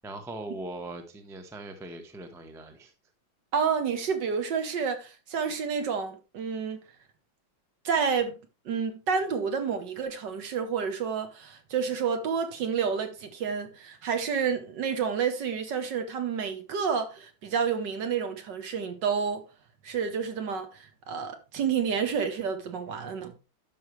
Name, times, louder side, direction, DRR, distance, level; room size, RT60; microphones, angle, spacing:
voice 1, 0.0-2.9, right 2 dB, 5° right, 0.5 m, -40 dB
voice 2, 3.5-6.8 7.8-8.4 8.6-19.4 19.8-23.3, right 6 dB, 60° right, 1.6 m, -29 dB
12.0 x 5.4 x 3.1 m
omnidirectional pair, 2.3 m